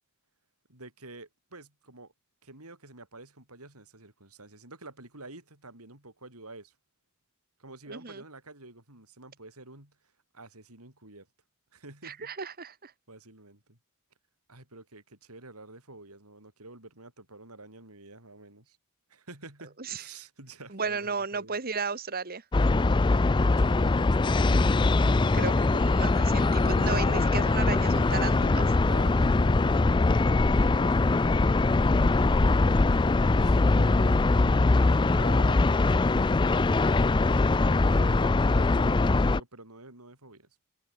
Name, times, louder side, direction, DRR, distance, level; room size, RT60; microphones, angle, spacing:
voice 1, 0.7-2.1 2.4-6.8 7.6-10.0 10.3-11.3 11.7-12.3 13.1-13.8 14.5-18.8 19.1-21.6 22.7-24.5 28.8-29.8 30.2-31.1 32.5-32.8 33.4-37.1 37.5-40.5, right 2 dB, 80° right, 7.6 m, -48 dB
voice 2, 7.9-8.2 12.0-12.9 19.8-20.0 20.7-22.4 25.1-28.7, right 5 dB, 45° right, 1.6 m, -34 dB
sound 1, 22.5-39.4, left 3 dB, 20° left, 0.4 m, -22 dB
head